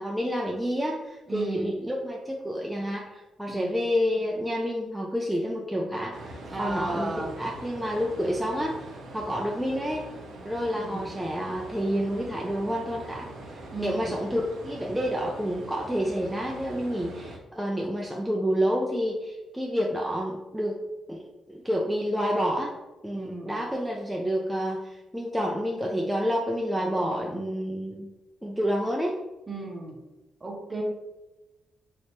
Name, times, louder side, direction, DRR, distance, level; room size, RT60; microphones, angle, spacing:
voice 1, 0.0-10.1 10.4-20.8 21.1-21.2 21.5-22.7 23.0-28.1 28.4-29.1, equal, 5° right, -2 dB, 0.4 m, -29 dB
voice 2, 1.3-1.7 3.5-3.7 6.5-7.3 10.7-11.1 13.7-14.2 23.1-23.6 29.5-30.0 30.4-30.8, right 2 dB, 25° right, 1 dB, 0.8 m, -35 dB
sound 1, 6.1-17.4, right 1 dB, 85° right, 0.6 m, -43 dB
3.2 x 2.8 x 2.9 m, 1.0 s
cardioid pair, 95°, 0 cm